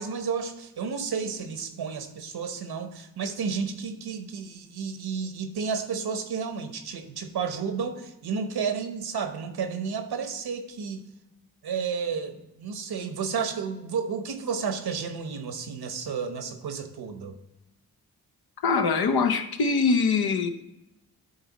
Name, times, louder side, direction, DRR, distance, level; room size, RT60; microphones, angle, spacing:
voice 1, 0.0-11.0 11.6-17.4, right 6 dB, 85° right, 8 dB, 1.0 m, -32 dB
voice 2, 18.6-20.5, left 4 dB, 80° left, 7 dB, 0.8 m, -23 dB
11.0 x 4.1 x 4.1 m, 0.92 s
cardioid pair, 60°, 37 cm